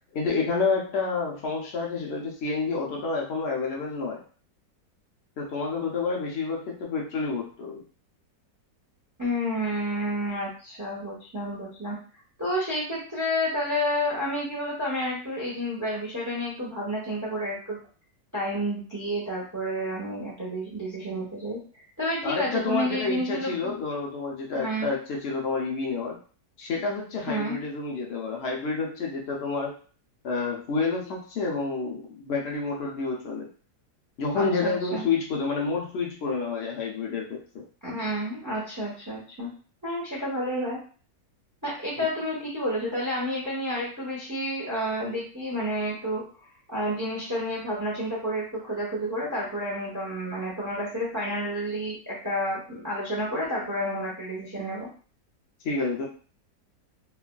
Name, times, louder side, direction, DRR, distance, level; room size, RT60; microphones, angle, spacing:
voice 1, 0.1-4.2 5.4-7.8 22.2-26.2 26.6-29.8 30.2-33.5 34.2-37.6 42.0-42.1 55.6-56.0, left 4 dB, 80° left, -1 dB, 0.5 m, -29 dB
voice 2, 9.2-12.0 12.4-17.8 18.3-23.7 24.5-24.9 27.3-27.6 34.3-35.1 37.8-39.5 39.8-40.8 41.6-46.2 46.7-54.9, equal, 25° right, -5 dB, 0.4 m, -30 dB
3.2 x 2.3 x 2.2 m, 0.40 s
omnidirectional pair, 1.9 m